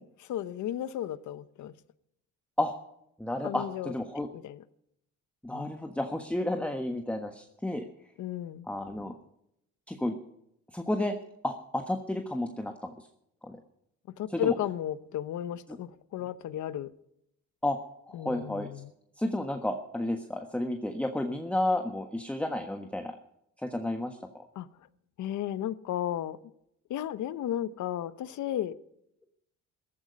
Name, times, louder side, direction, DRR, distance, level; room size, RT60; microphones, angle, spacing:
voice 1, 0.2-1.7 3.4-3.9 4.3-4.6 5.5-5.8 8.2-8.7 14.2-16.9 18.1-18.9 24.5-24.7 25.2-26.4 26.9-28.8, left 11 dB, 75° left, 14 dB, 0.9 m, -34 dB
voice 2, 3.2-4.3 5.4-7.8 8.7-9.1 9.9-10.1 10.7-11.1 11.4-12.9 13.4-13.6 14.3-14.5 17.6-17.8 18.1-18.7 19.2-23.1 23.6-24.4, left 1 dB, 5° left, 4 dB, 1.3 m, -31 dB
14.5 x 13.5 x 5.3 m, 0.77 s
cardioid pair, 90°, 30 cm